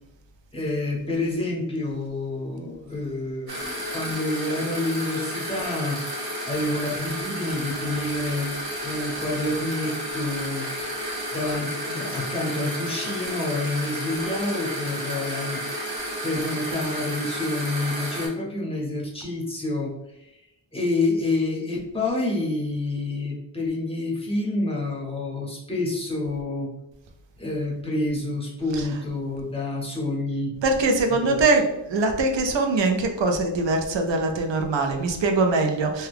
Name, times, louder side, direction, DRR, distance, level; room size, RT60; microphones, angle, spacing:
voice 1, 0.5-8.5 8.8-10.7 11.3-15.6 16.2-20.4 20.7-26.7 27.4-30.5 31.1-31.4, left 2 dB, 15° left, -3 dB, 0.8 m, -28 dB
sound 1, 3.5-18.3, equal, 55° right, 1.1 m, -32 dB
voice 2, 30.6-36.1, right 3 dB, 75° right, 4 dB, 0.6 m, -22 dB
2.8 x 2.3 x 3.3 m, 0.87 s
wide cardioid pair, 125°, 45 cm